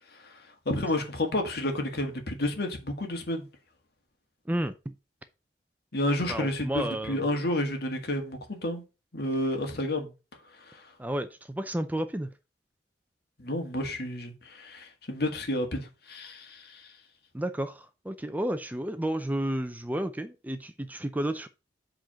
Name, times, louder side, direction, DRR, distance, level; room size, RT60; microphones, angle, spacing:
voice 1, 0.7-3.5 5.9-8.8 9.1-10.1 10.7-10.8 13.4-16.9, left 1 dB, 65° left, 1.8 m, -31 dB
voice 2, 4.5-4.9 6.3-7.3 11.0-12.3 17.3-21.5, right 1 dB, 10° right, 0.5 m, -31 dB
7.7 x 3.9 x 5.6 m
head